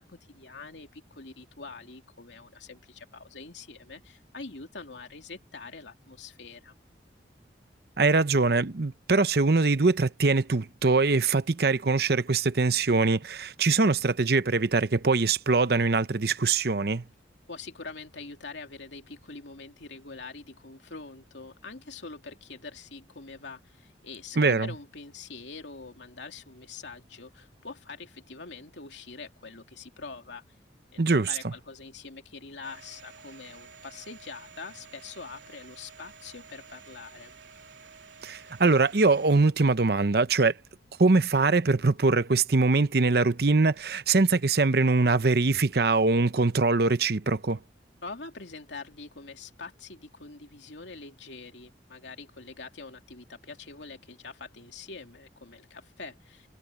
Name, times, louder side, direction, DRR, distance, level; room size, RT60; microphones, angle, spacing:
voice 1, 0.0-6.7 17.5-30.4 30.9-37.3 48.0-56.5, left 4 dB, 85° left, 2.7 m, -44 dB
voice 2, 8.0-17.0 24.4-24.7 31.0-31.5 38.2-40.5 41.0-47.6, right 3 dB, 60° right, 0.8 m, -23 dB
Domestic sounds home sounds, 32.6-39.3, right 6 dB, 90° right, 3.5 m, -51 dB
head